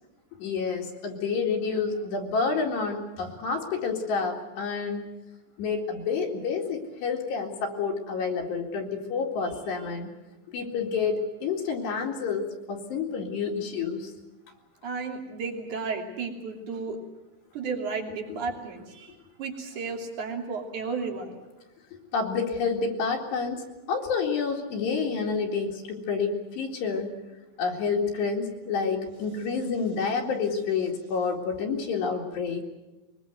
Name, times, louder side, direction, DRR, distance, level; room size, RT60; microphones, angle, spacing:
voice 1, 0.4-5.1 5.6-10.1 10.5-14.1 22.1-27.1 27.6-32.6, left 5 dB, 65° left, 0 dB, 4.1 m, -29 dB
voice 2, 14.8-17.0 17.5-19.1 19.4-21.4, right 4 dB, 45° right, 2 dB, 3.9 m, -33 dB
23.0 x 22.5 x 8.0 m, 1.1 s
omnidirectional pair, 5.6 m